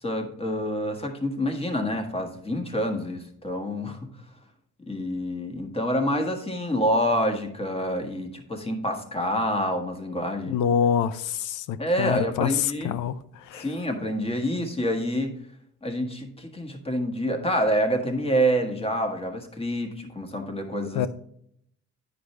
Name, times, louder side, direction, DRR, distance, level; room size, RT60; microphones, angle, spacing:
voice 1, 0.0-4.1 4.9-10.6 11.8-12.9 13.5-15.3 15.8-21.0, equal, 20° left, 1.6 m, -27 dB
voice 2, 10.5-13.7 20.9-21.1, left 8 dB, 85° left, 0.6 m, -26 dB
9.7 x 5.1 x 3.3 m
cardioid pair, 90°, 30 cm